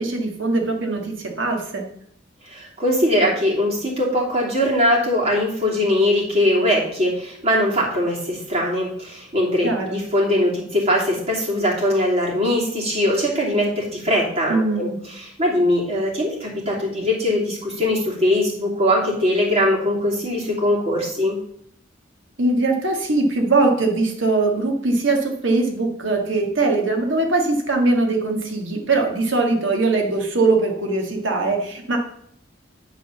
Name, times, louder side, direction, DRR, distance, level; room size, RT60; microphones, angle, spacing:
voice 1, 0.0-1.8 9.6-10.0 14.5-15.0 22.4-32.0, right 3 dB, 65° right, 2 dB, 1.7 m, -21 dB
voice 2, 2.5-21.4, left 1 dB, 30° right, -4 dB, 2.8 m, -21 dB
9.6 x 4.0 x 7.0 m, 0.69 s
head